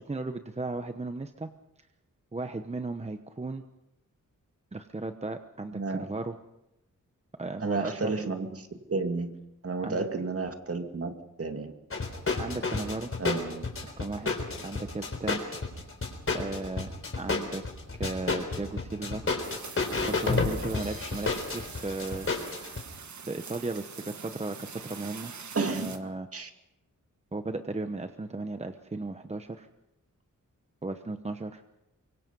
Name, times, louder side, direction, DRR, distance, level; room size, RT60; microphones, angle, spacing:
voice 1, 0.1-1.5 2.3-3.6 4.7-6.4 7.4-8.1 9.8-10.1 12.4-13.1 13.8-14.3 14.6-15.4 16.3-16.9 17.2-17.6 17.9-19.2 20.1-22.3 23.3-25.3 25.7-26.3 27.3-29.7 30.8-31.6, right 2 dB, 20° right, 8 dB, 1.0 m, -35 dB
voice 2, 5.7-6.0 7.6-9.3 9.6-11.7 13.2-13.7 25.5-25.9 26.3-26.5, right 4 dB, 45° right, 6 dB, 2.3 m, -32 dB
sound 1, 11.9-22.8, left 3 dB, 45° left, 4.0 m, -31 dB
sound 2, 19.4-26.0, right 6 dB, 65° right, 1.7 m, -44 dB
25.0 x 23.0 x 5.4 m, 0.88 s
wide cardioid pair, 105°, 31 cm